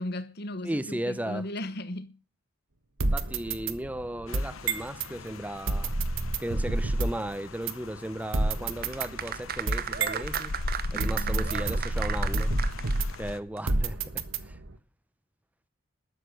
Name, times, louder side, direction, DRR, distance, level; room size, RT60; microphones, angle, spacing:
voice 1, 0.0-2.2 10.9-11.6, left 1 dB, 50° left, 1.2 m, -36 dB
voice 2, 0.6-1.5 3.1-6.0 6.4-10.5 10.9-12.5 13.2-14.6, right 1 dB, 5° right, 0.7 m, -35 dB
sound 1, 3.0-5.1 5.7-7.3 7.7-7.8 8.3-10.4 11.0-13.3 13.7-14.8, right 2 dB, 75° right, 1.3 m, -29 dB
Rain, 4.3-13.4, left 2 dB, 90° left, 0.9 m, -39 dB
sound 2, 8.8-13.3 13.6-13.7, right 8 dB, 45° right, 0.9 m, -35 dB
12.5 x 8.2 x 7.9 m
head